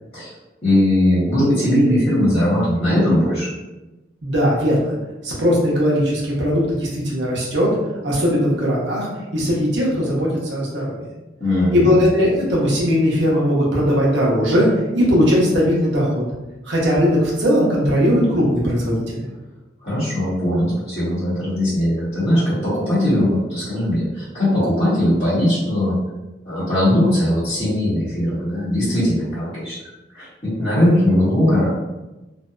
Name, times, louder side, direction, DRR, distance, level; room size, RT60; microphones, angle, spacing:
voice 1, 0.6-3.5 11.4-12.0 19.8-26.0 26.4-29.8 30.1-30.3 30.6-31.7, left 1 dB, 35° left, -14 dB, 1.0 m, -19 dB
voice 2, 4.2-4.9 5.2-7.7 8.0-11.1 11.7-14.7 14.9-16.2 16.6-19.2, equal, 70° right, -4 dB, 0.7 m, -19 dB
2.6 x 2.1 x 2.3 m, 1.0 s
head